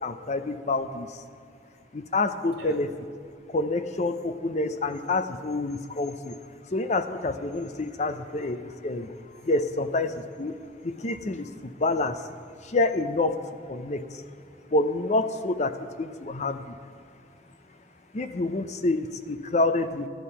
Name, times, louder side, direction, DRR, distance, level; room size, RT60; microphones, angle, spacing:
voice 1, 0.0-1.2 1.9-2.9 3.5-6.4 6.7-9.1 9.4-10.6 10.8-12.2 12.6-13.4 13.7-14.2 14.7-16.8 18.1-20.1, left 2 dB, 35° left, 10 dB, 0.5 m, -27 dB
voice 2, 1.3-2.1 2.6-2.8 6.5-6.6 9.4-9.5 11.0-11.2 13.8-13.9 14.4-14.6 16.6-16.7 17.0-18.2, right 2 dB, 55° right, 1 dB, 1.6 m, -53 dB
12.5 x 10.5 x 5.6 m, 2.4 s
head